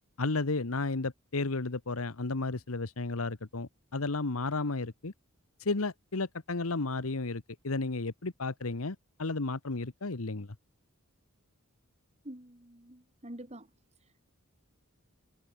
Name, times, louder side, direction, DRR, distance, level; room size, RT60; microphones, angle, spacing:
voice 1, 0.2-5.1 5.6-10.5, left 3 dB, 85° left, 1.3 m, -33 dB
voice 2, 12.2-13.7 14.0-14.3, right 1 dB, 30° right, 3.3 m, -47 dB
head